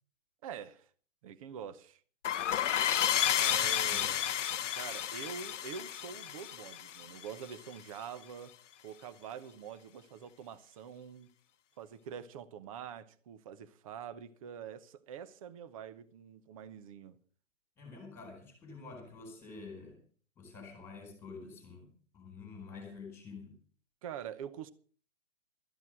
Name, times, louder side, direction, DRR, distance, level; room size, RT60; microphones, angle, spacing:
voice 1, 0.4-0.9 1.2-2.0 3.4-4.3 4.7-8.5 8.8-11.3 11.8-17.2 24.0-24.7, right 8 dB, 25° right, 0.8 m, -45 dB
sound 1, 2.2-7.6, left 11 dB, 70° left, 0.6 m, -31 dB
voice 2, 3.6-4.1 17.8-20.0 20.4-23.6, left 4 dB, 5° left, 4.3 m, -48 dB
13.0 x 10.5 x 6.2 m
hypercardioid pair, 150°, 38 cm